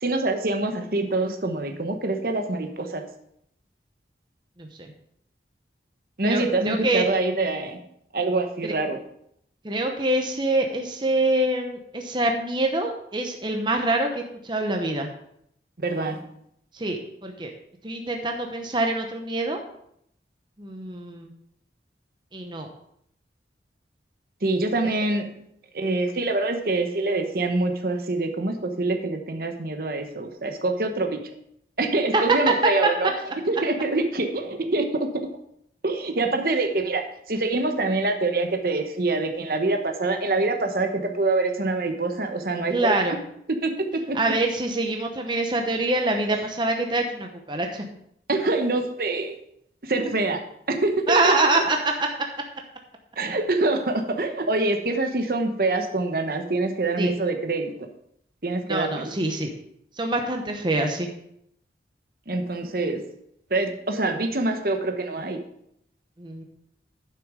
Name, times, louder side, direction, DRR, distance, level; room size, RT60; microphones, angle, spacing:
voice 1, 0.0-3.0 6.2-7.8 8.1-9.0 15.8-16.2 24.4-25.3 25.7-31.2 31.8-33.1 33.5-35.1 35.8-43.0 43.6-44.2 48.3-49.4 49.8-50.4 50.7-51.2 53.2-57.7 58.4-59.1 62.3-63.0 63.5-65.4, right 2 dB, 55° right, 5 dB, 1.0 m, -25 dB
voice 2, 4.6-4.9 6.2-7.1 8.6-8.7 9.6-15.1 16.7-17.5 17.8-19.6 20.6-21.3 22.3-22.7 32.1-32.2 42.7-43.2 44.1-47.8 51.1-52.1 57.0-57.1 58.7-59.5 60.0-61.1 66.2-66.4, right 2 dB, 25° right, 3 dB, 0.9 m, -25 dB
11.0 x 6.3 x 4.9 m, 0.73 s
head